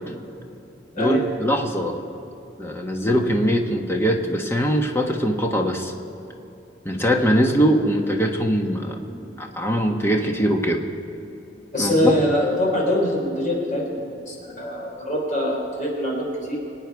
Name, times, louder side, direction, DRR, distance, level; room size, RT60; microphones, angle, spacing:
voice 1, 1.0-2.0 2.6-5.9 6.8-9.0 9.4-10.8 11.8-12.1, equal, 15° left, 2 dB, 1.2 m, -21 dB
voice 2, 11.7-16.6, left 1 dB, 45° left, -1 dB, 3.8 m, -24 dB
24.0 x 9.2 x 4.7 m, 2.8 s
head